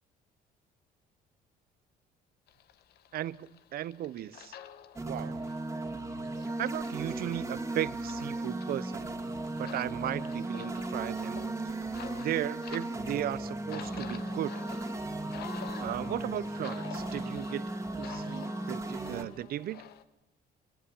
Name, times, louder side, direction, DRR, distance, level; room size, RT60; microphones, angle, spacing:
sound 1, 2.5-20.0, left 10 dB, 70° left, 1.4 m, -50 dB
voice 1, 3.1-4.6 5.1-5.5 6.6-9.1 9.6-11.4 11.6-11.7 12.2-14.7 15.8-17.7 18.0-19.8, right 12 dB, 60° right, 20 dB, 0.8 m, -36 dB
sound 2, 5.0-19.2, right 2 dB, 15° right, 2.3 m, -36 dB
24.5 x 20.0 x 7.1 m, 0.93 s
cardioid pair, 110°, 17 cm